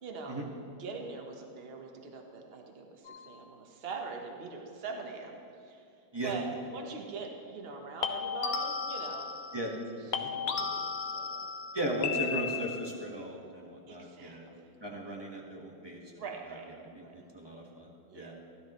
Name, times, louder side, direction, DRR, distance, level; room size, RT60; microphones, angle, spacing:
voice 1, 0.0-0.4 0.8-5.8 6.2-9.3 9.6-11.5 13.9-15.3 16.2-17.1 18.0-18.3, right 4 dB, 40° right, 2 dB, 1.2 m, -43 dB
sound 1, 3.1-3.3 8.0-9.9 10.1-13.0, left 6 dB, 65° left, 1.0 m, -35 dB
voice 2, 11.7-14.5 14.8-16.0 16.8-18.3, right 1 dB, 15° right, -1 dB, 1.2 m, -37 dB
16.0 x 12.0 x 3.1 m, 2.7 s
omnidirectional pair, 2.0 m